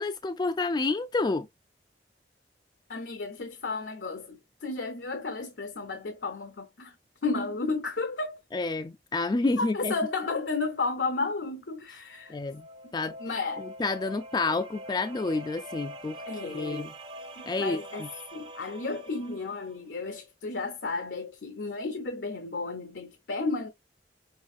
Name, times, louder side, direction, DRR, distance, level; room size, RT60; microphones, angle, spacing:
voice 1, 0.0-1.5 8.5-9.9 12.3-12.7 12.9-13.2 13.6-16.9 17.5-18.1, left 3 dB, 25° left, 0.3 m, -29 dB
voice 2, 2.9-6.9 7.2-8.4 9.6-12.4 12.8-12.9 13.2-13.7 16.3-16.9 17.4-23.7, left 3 dB, 85° left, 0.8 m, -33 dB
sound 1, 12.1-19.9, equal, 30° right, 0.6 m, -44 dB
6.1 x 2.6 x 2.6 m
head